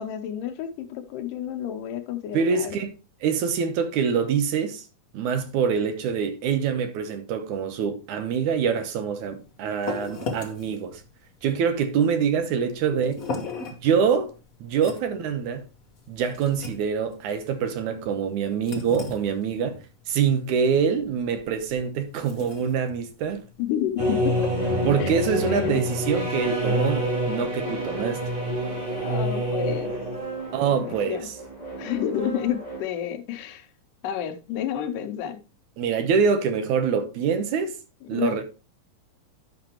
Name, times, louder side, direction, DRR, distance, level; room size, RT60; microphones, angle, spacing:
voice 1, 0.0-2.8 23.6-24.4 25.0-25.1 25.4-25.8 29.0-29.9 30.8-31.3 31.8-33.7 34.0-35.4 38.0-38.4, left 10 dB, 90° left, 2.5 m, -30 dB
voice 2, 2.3-2.9 3.2-4.9 5.1-11.0 11.4-13.3 13.8-14.3 14.6-15.7 16.1-19.8 20.1-23.4 24.9-28.3 30.5-31.3 35.8-37.7 38.1-38.4, right 6 dB, 75° right, 2.2 m, -25 dB
sound 1, 9.1-24.1, left 3 dB, 70° left, 0.8 m, -39 dB
sound 2, 24.0-32.8, equal, 10° right, 3.1 m, -27 dB
10.5 x 5.9 x 2.9 m
omnidirectional pair, 3.7 m